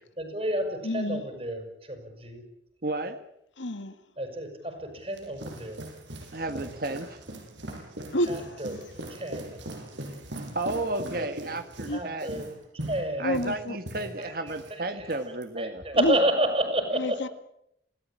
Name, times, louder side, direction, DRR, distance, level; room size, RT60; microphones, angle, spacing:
voice 1, 0.2-2.4 4.2-5.8 8.3-8.8 9.1-9.6 11.2-11.3 11.9-12.5 12.7-13.5 14.0-17.3, right 1 dB, 30° right, 5.7 m, -30 dB
voice 2, 0.8-1.3 3.6-4.0 8.1-8.6 11.9-12.1 13.2-13.8 15.9-16.2 16.9-17.3, left 1 dB, 80° left, 1.9 m, -29 dB
voice 3, 2.8-3.2 6.3-7.2 10.5-12.4 13.2-15.8, right 2 dB, 50° right, 1.5 m, -32 dB
sound 1, 4.8-14.7 15.0-15.4, right 1 dB, 80° right, 7.1 m, -40 dB
28.0 x 18.0 x 8.7 m
head